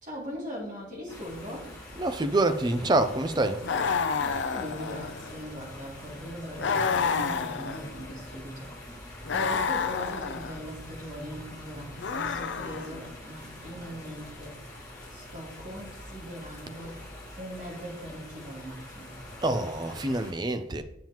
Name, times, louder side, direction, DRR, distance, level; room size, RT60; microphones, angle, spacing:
voice 1, 0.0-1.7 4.1-14.5 15.1-17.0 17.4-19.1, equal, 40° right, 2.5 m, -40 dB
sound 1, 1.1-20.3, left 1 dB, 20° left, 2.7 m, -45 dB
voice 2, 2.0-3.7 19.4-20.8, right 2 dB, 20° right, 0.4 m, -26 dB
sound 2, 3.6-5.4 6.6-8.1 9.2-10.6 12.0-13.1, left 5 dB, 65° left, 0.5 m, -29 dB
7.4 x 7.3 x 3.0 m
head